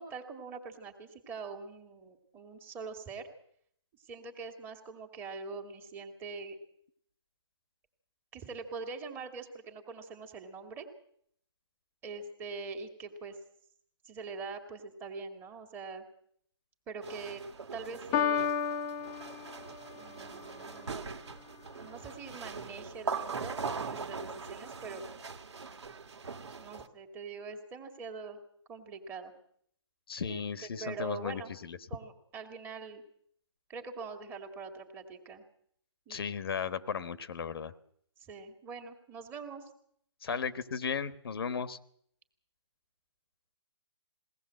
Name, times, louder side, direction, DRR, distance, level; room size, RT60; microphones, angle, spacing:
voice 1, 0.0-3.3 3.9-6.6 8.3-10.9 12.0-13.4 14.0-16.1 16.9-17.4 17.7-18.5 19.9-21.0 21.8-25.0 26.5-28.4 28.7-29.3 30.3-30.4 30.8-31.5 31.9-33.0 33.7-35.4 36.1-36.2 38.2-39.7 40.3-40.4, right 4 dB, 15° right, 6 dB, 2.2 m, -43 dB
sound 1, 17.0-26.9, right 5 dB, 70° right, 1.9 m, -41 dB
Piano, 18.1-20.1, left 7 dB, 15° left, 1.0 m, -32 dB
voice 2, 30.1-31.8 36.1-37.7 40.2-41.8, left 6 dB, 55° left, 13 dB, 1.3 m, -35 dB
21.5 x 17.5 x 7.7 m, 0.66 s
hypercardioid pair, 155°, 15 cm